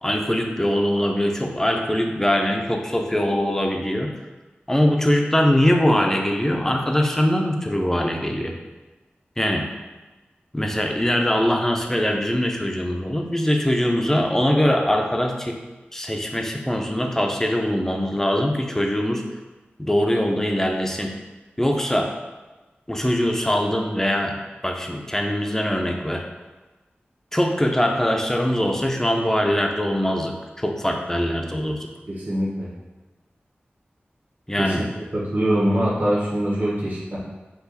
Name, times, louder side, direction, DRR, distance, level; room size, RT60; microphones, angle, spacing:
voice 1, 0.0-4.1 4.7-8.5 9.4-9.7 10.5-15.6 15.9-19.2 19.8-21.1 21.6-22.1 22.9-24.4 24.6-26.2 27.3-31.9 34.5-34.8, equal, 10° left, 2 dB, 0.6 m, -22 dB
voice 2, 32.1-32.7 34.6-37.2, equal, 45° right, -7 dB, 1.3 m, -23 dB
4.6 x 2.5 x 4.0 m, 1.2 s
wide cardioid pair, 45°, 4 cm